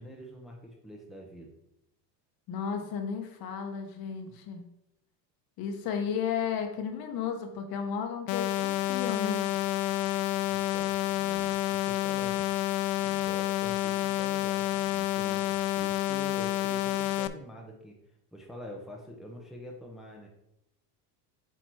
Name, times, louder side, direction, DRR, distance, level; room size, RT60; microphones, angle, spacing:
voice 1, 0.0-1.5 10.5-12.5 13.0-18.0 18.3-20.3, equal, ahead, 0 dB, 0.8 m, -46 dB
voice 2, 2.5-4.6 5.6-9.4, left 6 dB, 45° left, 5 dB, 1.2 m, -33 dB
sound 1, 8.3-17.3, left 13 dB, 85° left, 0.6 m, -29 dB
8.0 x 3.0 x 4.7 m, 0.81 s
supercardioid pair, 125°, 48 cm